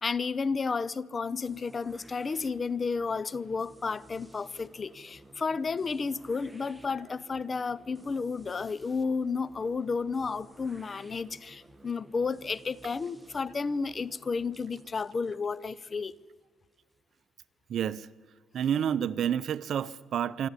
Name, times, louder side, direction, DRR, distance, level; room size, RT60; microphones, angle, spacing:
voice 1, 0.0-16.1, left 4 dB, 35° left, 0.7 m, -32 dB
sound 1, 1.4-17.2, right 1 dB, 10° right, 1.4 m, -55 dB
voice 2, 17.7-18.1 18.5-20.5, right 9 dB, 60° right, 0.7 m, -29 dB
24.5 x 13.0 x 9.8 m
cardioid pair, 90°, 0 cm